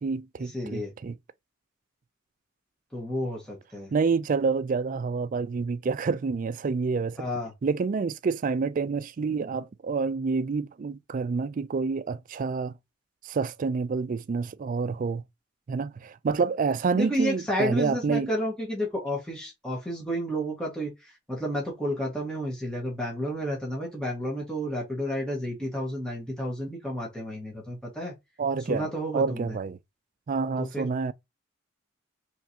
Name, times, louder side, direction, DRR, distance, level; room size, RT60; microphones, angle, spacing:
voice 1, 0.0-1.2 3.9-7.2 7.6-12.7 13.2-15.2 15.7-18.3 28.4-29.8 30.3-31.1, right 4 dB, 40° right, 0.3 m, -28 dB
voice 2, 0.5-0.9 2.9-3.9 7.2-7.5 16.9-28.1 28.7-29.5 30.6-30.9, equal, 5° left, 1.6 m, -31 dB
4.6 x 3.2 x 2.8 m
head